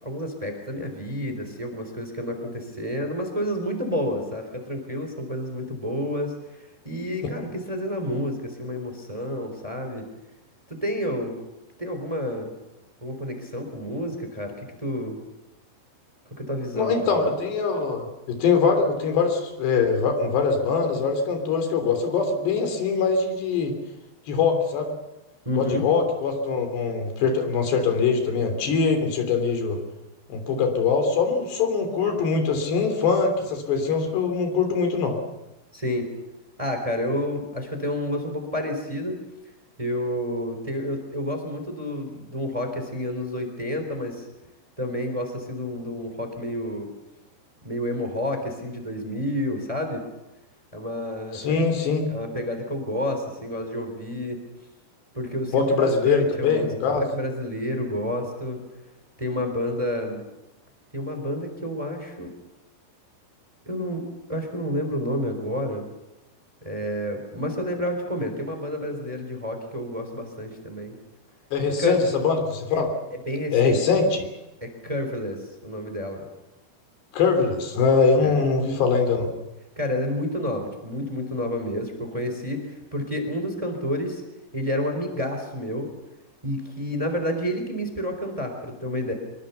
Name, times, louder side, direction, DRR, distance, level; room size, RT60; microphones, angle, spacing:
voice 1, 0.0-10.0 10.7-11.4 11.8-12.5 13.0-15.2 16.4-17.2 25.4-25.9 35.7-36.1 36.6-39.2 39.8-44.3 44.8-46.9 47.6-50.0 50.7-51.6 52.1-54.4 55.1-58.6 59.2-60.2 60.9-62.3 63.6-64.0 64.3-65.8 66.6-70.9 71.8-72.0 72.7-72.8 73.3-73.8 74.6-76.2 78.2-78.4 79.7-84.2 84.5-85.9 86.4-89.1, left 1 dB, 10° right, 5 dB, 3.2 m, -29 dB
voice 2, 16.7-23.7 24.3-24.9 25.6-29.8 30.3-35.2 51.3-52.1 55.5-57.0 71.5-72.9 73.5-74.3 77.1-79.3, left 5 dB, 80° left, 6 dB, 5.4 m, -22 dB
24.5 x 23.0 x 7.0 m, 0.96 s
omnidirectional pair, 4.8 m